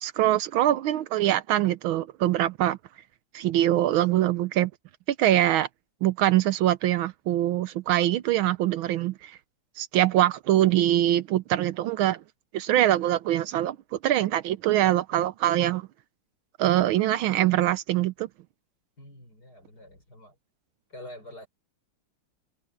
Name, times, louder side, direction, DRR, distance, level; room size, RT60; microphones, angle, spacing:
voice 1, 0.0-2.8 3.3-4.7 5.2-5.7 6.0-9.4 9.8-12.2 12.5-15.9 16.6-18.3, right 13 dB, 80° right, 1.4 m, -23 dB
voice 2, 4.2-4.5 19.0-20.4 20.9-21.5, left 1 dB, 45° left, 7.0 m, -46 dB
omnidirectional pair, 2.4 m